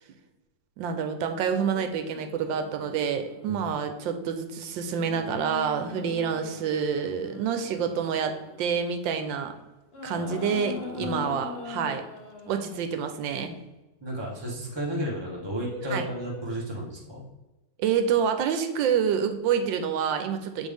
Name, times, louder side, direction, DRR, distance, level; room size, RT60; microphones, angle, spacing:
voice 1, 0.8-9.5 10.0-12.0 12.4-13.6 15.9-16.0 17.8-20.7, right 7 dB, 85° right, 7 dB, 1.4 m, -27 dB
sound 1, 1.7-3.9 4.9-9.2 9.9-12.9 15.2-16.7 18.0-18.2, left 4 dB, 45° left, 0.8 m, -41 dB
voice 2, 14.0-17.2, equal, 15° right, -4 dB, 1.3 m, -33 dB
7.2 x 3.9 x 3.4 m, 1.1 s
omnidirectional pair, 2.0 m